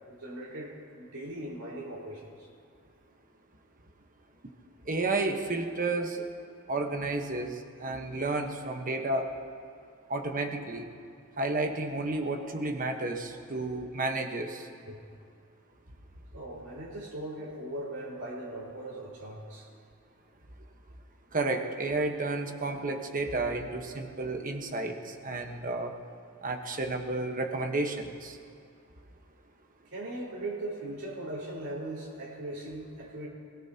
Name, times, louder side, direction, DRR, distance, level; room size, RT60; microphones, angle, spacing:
voice 1, 0.2-2.5 14.9-15.0 16.3-19.7 29.9-33.3, right 1 dB, 80° right, -5 dB, 4.7 m, -39 dB
voice 2, 4.9-6.2 6.7-9.3 10.1-10.8 11.4-14.7 21.3-25.9 26.4-28.4, right 2 dB, 40° right, 4 dB, 1.2 m, -31 dB
27.0 x 17.5 x 2.9 m, 2.3 s
head